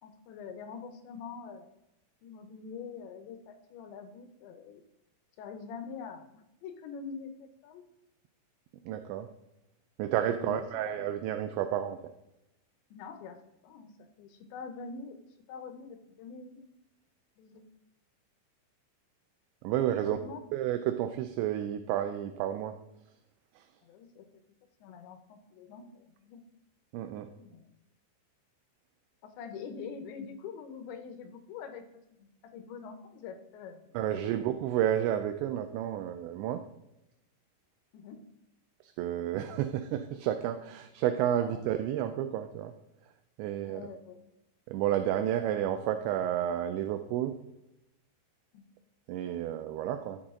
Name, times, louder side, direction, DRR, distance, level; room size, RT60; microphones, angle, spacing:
voice 1, 0.0-1.7 2.2-4.8 5.4-7.8 10.3-11.0 12.9-13.9 14.2-15.2 15.5-16.6 17.4-17.6 20.0-20.7 23.8-24.3 24.8-26.4 27.4-27.7 29.2-31.8 32.1-34.6 37.9-38.2 41.3-41.7 43.6-44.2 48.5-48.6, left 5 dB, 75° left, 7 dB, 3.1 m, -45 dB
voice 2, 8.9-9.3 10.0-12.0 19.6-20.2 20.5-22.8 23.6-23.7 26.9-27.3 33.9-36.6 38.8-42.7 43.4-43.9 44.7-47.3 49.1-50.2, right 11 dB, 80° right, 8 dB, 2.8 m, -31 dB
13.5 x 7.9 x 3.8 m, 0.88 s
omnidirectional pair, 5.5 m